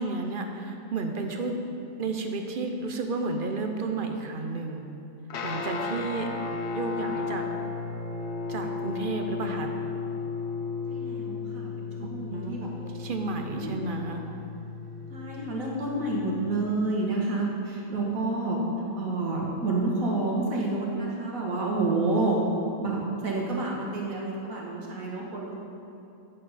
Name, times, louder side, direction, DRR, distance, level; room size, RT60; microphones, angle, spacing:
voice 1, 0.0-1.6 2.0-4.9 5.4-6.3 6.7-7.5 8.5-9.7 12.3-12.6 12.9-14.2, right 3 dB, 50° right, 4 dB, 0.7 m, -32 dB
Guitar, 5.3-16.7, left 4 dB, 60° left, 0.9 m, -34 dB
voice 2, 10.9-12.9 13.5-13.7 15.1-18.6 19.0-22.4 22.8-25.6, right 2 dB, 85° right, -3 dB, 1.9 m, -29 dB
10.0 x 7.5 x 4.1 m, 2.8 s
omnidirectional pair, 1.4 m